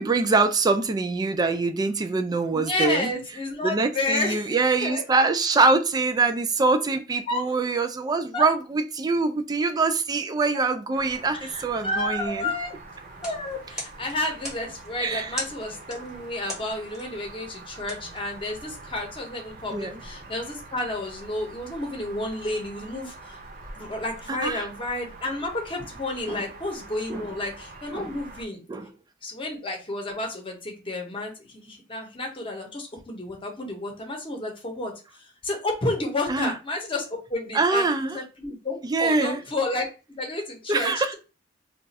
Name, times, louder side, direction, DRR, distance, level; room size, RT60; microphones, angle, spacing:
voice 1, 0.0-3.1 3.6-12.5 15.0-15.3 19.7-20.0 24.3-24.7 26.3-26.4 27.1-27.2 27.9-28.1 28.7-28.9 36.3-36.5 37.5-38.2 38.9-39.4 40.7-41.1, right 3 dB, 20° right, 0.3 m, -24 dB
voice 2, 2.5-4.6 4.8-5.3 7.3-7.4 8.3-8.5 11.3-12.7 13.2-23.4 23.8-28.7 29.2-34.9 35.2-37.9 38.1-41.1, left 2 dB, 30° left, 0.8 m, -31 dB
sound 1, 10.9-28.4, right 3 dB, 50° right, 0.7 m, -45 dB
sound 2, 13.1-18.9, equal, 5° right, 0.8 m, -41 dB
2.4 x 2.4 x 4.0 m
head